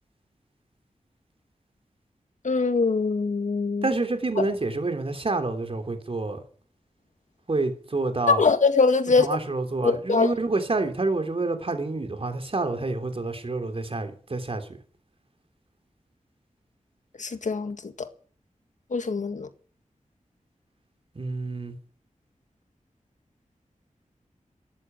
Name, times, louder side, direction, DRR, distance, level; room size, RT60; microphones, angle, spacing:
voice 1, 2.4-3.9 4.4-4.5 8.3-9.3 9.8-10.3 17.2-18.1 18.9-19.5, left 4 dB, 70° left, 1.9 m, -23 dB
voice 2, 3.8-6.4 7.5-8.5 9.2-14.7 21.1-21.7, right 3 dB, 45° right, 3.4 m, -28 dB
13.5 x 11.5 x 9.4 m
wide cardioid pair, 95°, 13 cm